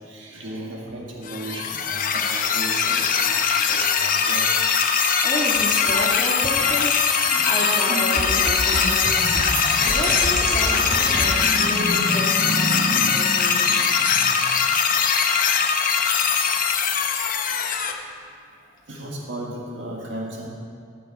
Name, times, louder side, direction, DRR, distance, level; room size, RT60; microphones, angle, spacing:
voice 1, 0.1-5.5 5.9-6.2 6.6-7.6 8.0-8.4 8.7-14.5 18.9-20.5, right 1 dB, 80° right, -2 dB, 1.7 m, -33 dB
sound 1, 1.2-17.9, left 6 dB, 45° left, 0.7 m, -21 dB
voice 2, 5.2-9.3 9.8-12.3 12.6-12.7 13.1-13.7, left 1 dB, 25° left, -4 dB, 2.0 m, -30 dB
sound 2, 7.1-11.4, right 1 dB, 40° right, 2.1 m, -28 dB
16.0 x 6.8 x 4.9 m, 2.3 s
head